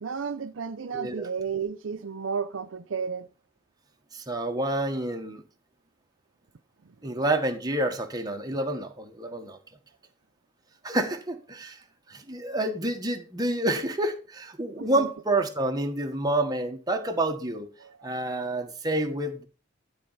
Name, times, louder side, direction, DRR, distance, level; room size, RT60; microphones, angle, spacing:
voice 1, 0.0-3.3 14.8-15.1 17.8-18.2, right 6 dB, 85° right, 0.6 m, -33 dB
voice 2, 0.9-1.3 4.1-5.4 7.0-9.6 10.8-11.8 12.1-17.7 18.0-19.4, right 1 dB, 20° right, 1.4 m, -28 dB
11.5 x 4.5 x 5.6 m
head